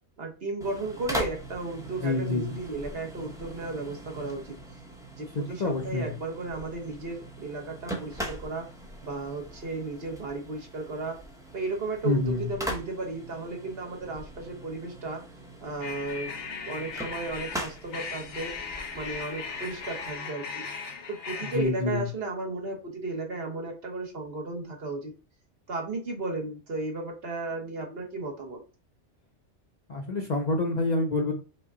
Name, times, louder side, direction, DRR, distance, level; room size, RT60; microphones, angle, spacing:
voice 1, 0.2-4.6 5.1-8.7 9.0-11.2 11.5-15.2 15.6-18.5 18.9-20.6 21.1-25.1 25.7-28.6, right 3 dB, 55° right, 1 dB, 1.3 m, -34 dB
sound 1, 0.6-20.2, right 1 dB, 5° right, 0.6 m, -41 dB
voice 2, 2.0-2.6 5.3-6.1 12.0-12.5 21.4-22.0 29.9-31.3, left 2 dB, 45° left, 2 dB, 0.7 m, -27 dB
sound 2, 15.8-21.7, left 5 dB, 75° left, 1.2 m, -38 dB
5.5 x 2.2 x 3.8 m, 0.34 s
omnidirectional pair, 1.2 m